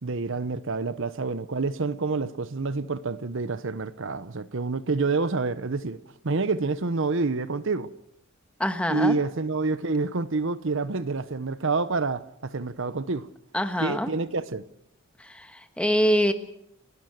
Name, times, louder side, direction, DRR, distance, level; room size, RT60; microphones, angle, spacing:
voice 1, 0.0-6.0 6.2-7.9 8.9-13.3 13.8-14.6, right 3 dB, 60° right, 0.9 m, -28 dB
voice 2, 8.6-9.2 13.5-14.1 15.2-16.3, equal, 5° left, 1.4 m, -25 dB
30.0 x 12.5 x 7.8 m
head